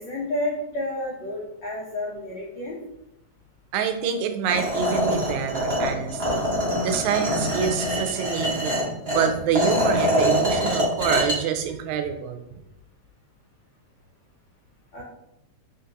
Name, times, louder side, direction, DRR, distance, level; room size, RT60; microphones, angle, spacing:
voice 1, 0.0-2.8 14.9-15.0, left 1 dB, 75° left, -5 dB, 1.0 m, -30 dB
voice 2, 3.7-6.5 6.8-12.4, right 7 dB, 85° right, 6 dB, 1.9 m, -26 dB
sound 1, 4.5-11.4, equal, 55° right, 0.3 m, -24 dB
4.0 x 3.7 x 2.9 m, 0.81 s
omnidirectional pair, 3.3 m